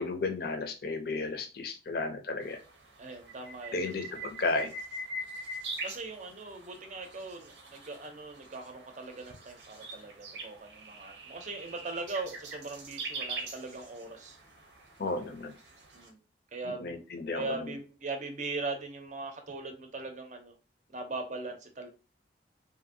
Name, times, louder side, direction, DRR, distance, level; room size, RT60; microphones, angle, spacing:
voice 1, 0.0-2.6 3.7-4.7 15.0-15.5 16.8-17.7, left 3 dB, 55° left, 6 dB, 0.5 m, -33 dB
sound 1, 2.4-16.1, right 2 dB, 80° right, 0.7 m, -43 dB
voice 2, 3.0-3.7 5.8-14.4 15.9-16.2 16.5-17.0 17.3-20.5 20.9-21.9, right 3 dB, 40° right, 5 dB, 0.6 m, -40 dB
2.7 x 2.5 x 2.6 m, 0.32 s
head